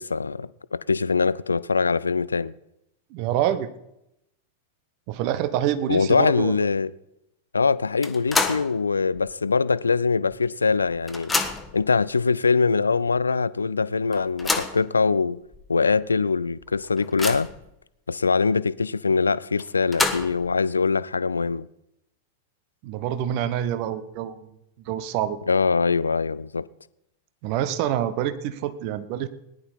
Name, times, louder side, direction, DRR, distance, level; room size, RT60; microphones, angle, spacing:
voice 1, 0.0-2.5 5.9-6.9 7.5-11.3 11.7-15.4 15.7-17.5 18.1-21.7 25.5-26.7, left 4 dB, 75° left, 0.4 m, -23 dB
voice 2, 3.1-3.7 5.1-6.6 22.8-24.5 24.8-25.4 27.4-29.3, right 11 dB, 45° right, 1.0 m, -26 dB
sound 1, 8.0-8.8 9.2-9.3 10.3-10.4 10.7-11.8 12.6-12.7 13.1-13.2 14.1-14.8 15.5-15.6 16.0-16.1 16.6-17.6 19.6-20.5, left 3 dB, 10° left, 1.3 m, -27 dB
18.0 x 11.0 x 4.3 m
figure-of-eight pair, 90°, 0 cm